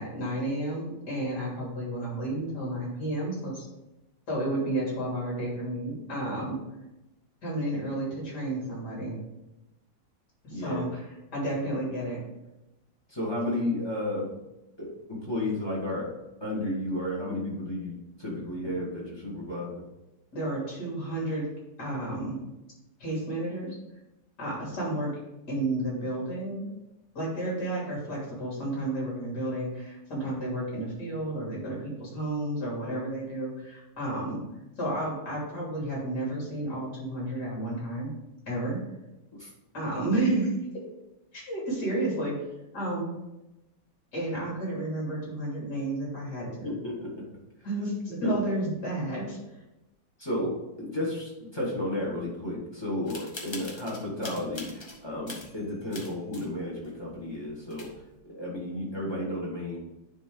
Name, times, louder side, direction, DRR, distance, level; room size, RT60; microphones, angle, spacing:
voice 1, 0.0-3.6 4.3-6.6 7.4-9.2 10.4-11.0 11.3-12.2 20.3-21.5 21.8-22.4 23.0-23.7 24.4-25.1 25.5-26.6 27.2-34.4 34.8-38.1 38.5-38.8 39.7-40.5 41.3-42.3 42.7-43.1 44.1-46.7 47.6-49.4, right 1 dB, 55° left, -5 dB, 3.6 m, -31 dB
voice 2, 10.5-10.9 13.1-14.3 14.8-16.1 16.4-19.8 39.3-39.5 46.6-47.1 48.2-48.3 50.2-59.8, left 1 dB, 10° left, -5 dB, 2.2 m, -33 dB
oldfashioned typewriter, 53.1-55.0 55.3-56.5 56.8-56.9 57.4-57.5 57.7-58.1, left 2 dB, 30° left, 0.5 m, -42 dB
9.9 x 4.0 x 3.9 m, 0.96 s
omnidirectional pair, 2.2 m